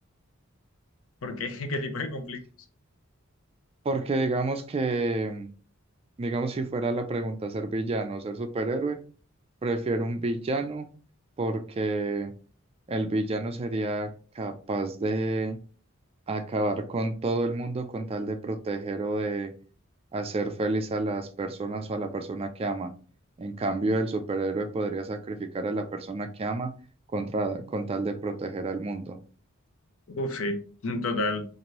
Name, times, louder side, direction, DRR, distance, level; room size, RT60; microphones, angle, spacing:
voice 1, 1.2-2.4 30.2-31.4, left 2 dB, 75° left, 0.5 m, -30 dB
voice 2, 3.8-5.5 6.2-9.0 9.6-10.9 11.4-12.3 12.9-15.6 16.3-19.5 20.1-22.9 23.4-26.7 27.1-29.2, right 2 dB, 30° right, 0.3 m, -29 dB
2.9 x 2.5 x 2.9 m
head